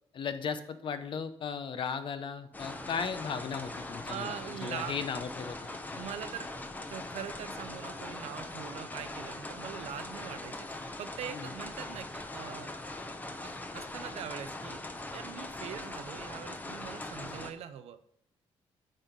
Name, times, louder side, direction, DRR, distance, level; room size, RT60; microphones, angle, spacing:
voice 1, 0.1-4.3 4.6-5.6 5.8-6.1 11.3-11.5, left 6 dB, 50° left, 10 dB, 0.8 m, -36 dB
sound 1, 2.5-17.5, left 2 dB, 15° left, 0.8 m, -41 dB
voice 2, 4.1-4.9 5.9-6.5 6.9-12.7 13.4-14.8 15.1-18.0, right 9 dB, 80° right, 11 dB, 0.7 m, -42 dB
8.9 x 4.0 x 5.1 m, 0.66 s
cardioid pair, 105°, 11 cm